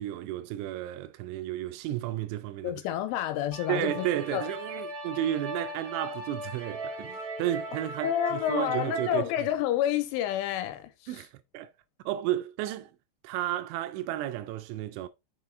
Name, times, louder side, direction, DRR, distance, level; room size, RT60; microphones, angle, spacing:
voice 1, 0.0-2.8 3.7-9.5 11.1-11.7 12.1-12.9 13.2-15.1, right 13 dB, 85° right, 2.8 m, -32 dB
voice 2, 2.6-4.0 4.3-4.4 8.0-10.9, left 12 dB, 85° left, 3.4 m, -29 dB
sound 1, 3.5-9.2, right 2 dB, 65° right, 0.9 m, -38 dB
6.9 x 5.8 x 3.6 m
omnidirectional pair, 5.7 m